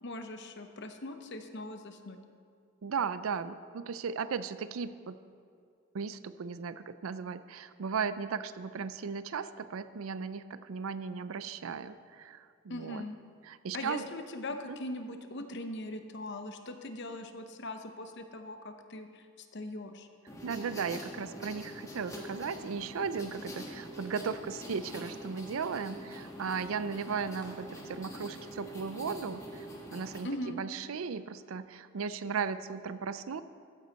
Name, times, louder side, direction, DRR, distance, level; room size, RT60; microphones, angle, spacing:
voice 1, 0.0-2.2 12.7-13.2 13.7-20.1 30.2-30.6, left 1 dB, 55° left, 7 dB, 0.8 m, -40 dB
voice 2, 2.8-5.1 5.9-13.0 13.4-14.0 14.7-14.8 20.4-29.7 29.9-33.4, right 5 dB, 75° right, 13 dB, 0.5 m, -36 dB
sound 1, 20.3-30.2, equal, 15° left, 1.5 m, -44 dB
14.0 x 9.6 x 4.1 m, 2.3 s
head